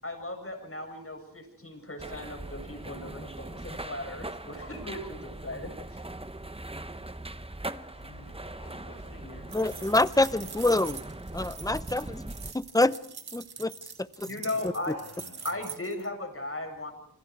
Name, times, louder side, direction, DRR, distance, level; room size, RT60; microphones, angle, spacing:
voice 1, 0.0-6.0 14.2-15.0 15.4-16.9, left 2 dB, 35° left, 4 dB, 7.7 m, -37 dB
sound 1, 2.0-12.5, right 2 dB, 15° right, 1.0 m, -41 dB
voice 2, 7.9-10.5 14.2-15.7, left 3 dB, 75° left, 2 dB, 4.9 m, -52 dB
voice 3, 9.5-11.0 11.3-12.9 13.3-13.7 14.2-14.3, left 2 dB, 10° left, 15 dB, 0.8 m, -26 dB
sound 2, 9.5-16.1, right 6 dB, 75° right, 1.6 m, -44 dB
28.5 x 25.0 x 4.8 m, 0.67 s
wide cardioid pair, 70°, 38 cm